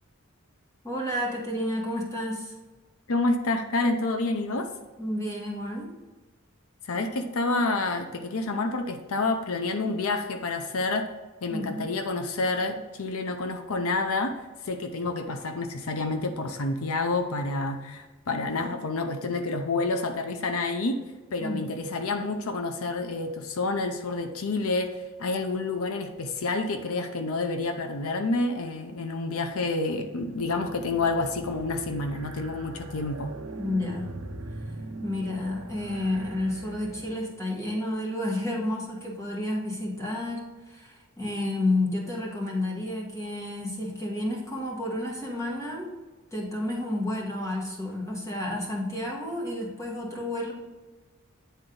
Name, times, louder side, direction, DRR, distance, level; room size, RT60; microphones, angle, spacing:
voice 1, 0.8-2.5 5.0-5.9 11.5-11.8 21.4-21.7 33.6-34.1 35.0-45.9 46.3-50.5, left 1 dB, 15° left, -3 dB, 1.7 m, -31 dB
voice 2, 3.1-4.7 6.8-11.1 11.4-21.0 21.3-33.3, left 3 dB, 85° left, 6 dB, 0.7 m, -28 dB
sound 1, 30.1-37.5, right 2 dB, 80° right, 0.8 m, -41 dB
9.2 x 3.9 x 3.9 m, 1.2 s
head